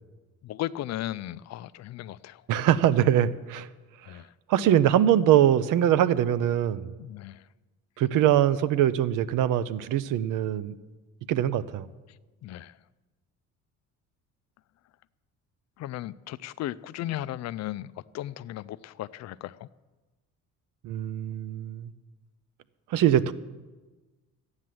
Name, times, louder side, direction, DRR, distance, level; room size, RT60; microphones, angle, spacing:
voice 1, 0.4-2.4 4.1-4.3 7.0-7.4 12.4-12.8 15.8-19.7, left 14 dB, 55° left, 0.4 m, -36 dB
voice 2, 2.5-3.7 4.5-6.9 8.0-10.7 11.3-11.9 20.8-21.9 22.9-23.3, right 11 dB, 75° right, 0.7 m, -23 dB
13.5 x 9.7 x 7.7 m
cardioid pair, 145°, 32 cm